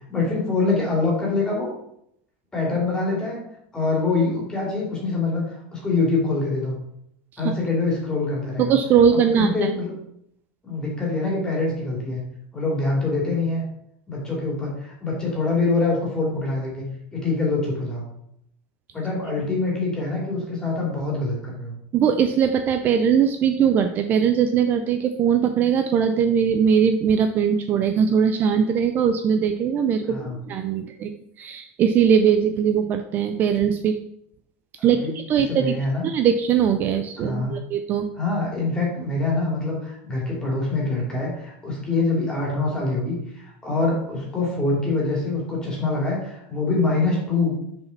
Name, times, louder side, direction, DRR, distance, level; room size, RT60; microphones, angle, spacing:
voice 1, 0.1-1.7 2.5-3.4 3.7-5.4 5.7-6.8 7.4-8.7 9.1-9.9 10.6-12.2 12.5-13.6 14.1-16.8 17.1-18.0 18.9-21.7 30.0-30.4 34.8-35.2 35.5-36.1 37.2-37.5 38.2-47.6, left 3 dB, 10° left, -3 dB, 2.5 m, -25 dB
voice 2, 8.6-9.5 21.9-31.1 31.4-34.0 34.8-35.7 36.0-38.1, right 7 dB, 30° right, 7 dB, 0.4 m, -20 dB
6.4 x 4.8 x 5.7 m, 0.74 s
supercardioid pair, 165°, 6 cm